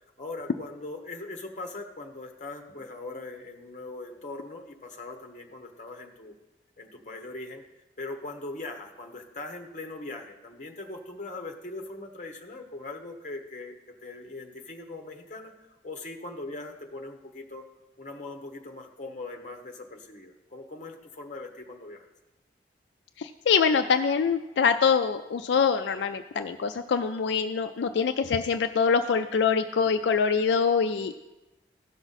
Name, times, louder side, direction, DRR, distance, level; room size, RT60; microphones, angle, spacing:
voice 1, 0.2-6.4 6.8-7.6 8.0-17.6 18.0-22.1, left 2 dB, 40° left, 4 dB, 1.0 m, -40 dB
voice 2, 23.2-31.1, left 6 dB, 75° left, 7 dB, 0.4 m, -24 dB
15.5 x 5.9 x 4.1 m, 1.0 s
head